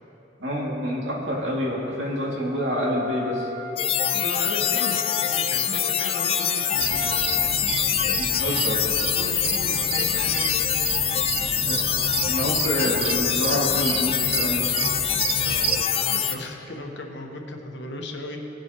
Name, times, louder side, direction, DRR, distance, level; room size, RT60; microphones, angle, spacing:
voice 1, 0.4-3.5 8.2-8.8 11.6-11.8 12.2-14.7, equal, 90° right, -4 dB, 2.3 m, -27 dB
Wind instrument woodwind instrument, 2.5-7.2, left 5 dB, 15° right, 1.9 m, -36 dB
voice 2, 3.7-7.0 9.0-10.5 15.4-18.4, left 1 dB, 75° left, 2 dB, 1.1 m, -36 dB
sound 1, 3.8-16.4, left 8 dB, 30° left, 0.4 m, -24 dB
sound 2, 6.8-15.8, right 7 dB, 55° right, 0.4 m, -31 dB
18.0 x 7.7 x 3.0 m, 2.9 s
head